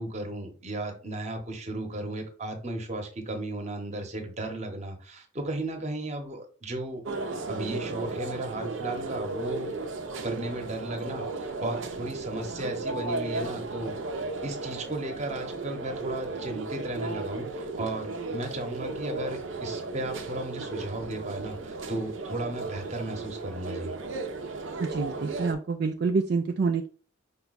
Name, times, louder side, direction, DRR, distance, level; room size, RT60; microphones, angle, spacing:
voice 1, 0.0-7.0 7.5-9.7 10.2-13.9 14.4-23.9, right 1 dB, 35° right, 3 dB, 1.0 m, -35 dB
sound 1, 7.0-25.5, right 3 dB, 80° right, 0.7 m, -35 dB
voice 2, 24.8-26.9, right 4 dB, 55° right, 5 dB, 0.4 m, -27 dB
5.4 x 2.3 x 4.0 m, 0.39 s
head